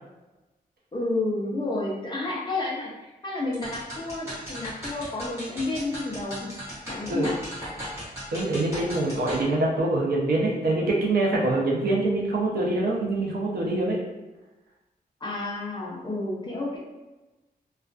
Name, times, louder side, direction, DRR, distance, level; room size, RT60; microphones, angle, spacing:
voice 1, 0.9-6.5 6.9-7.4 15.2-16.8, left 2 dB, 30° left, -4 dB, 0.5 m, -30 dB
sound 1, 3.5-9.4, equal, 15° right, 1.0 m, -37 dB
voice 2, 8.3-14.0, right 2 dB, 75° right, -3 dB, 0.6 m, -24 dB
2.3 x 2.2 x 2.4 m, 1.1 s
wide cardioid pair, 170°, 16 cm